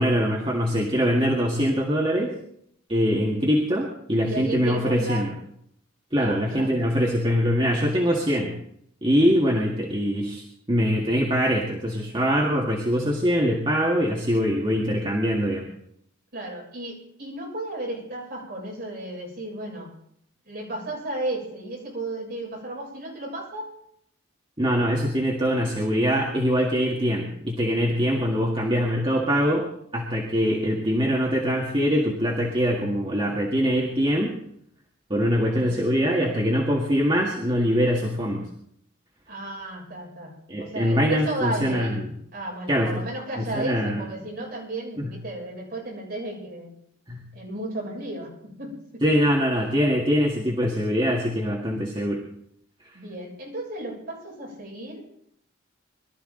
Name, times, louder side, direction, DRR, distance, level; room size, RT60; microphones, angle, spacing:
voice 1, 0.0-2.3 2.9-5.3 6.1-8.5 9.0-15.7 24.6-29.7 29.9-34.4 35.1-38.4 40.5-42.0 42.7-43.0 43.4-44.0 45.0-45.1 47.1-47.2 49.0-52.2, equal, 25° right, -2 dB, 2.0 m, -23 dB
voice 2, 4.2-5.3 6.2-6.8 16.3-19.9 20.5-23.7 35.3-35.8 39.3-42.0 42.3-46.7 47.3-49.2 52.9-55.0, right 2 dB, 50° right, -3 dB, 7.2 m, -34 dB
22.5 x 13.0 x 3.9 m, 0.70 s
head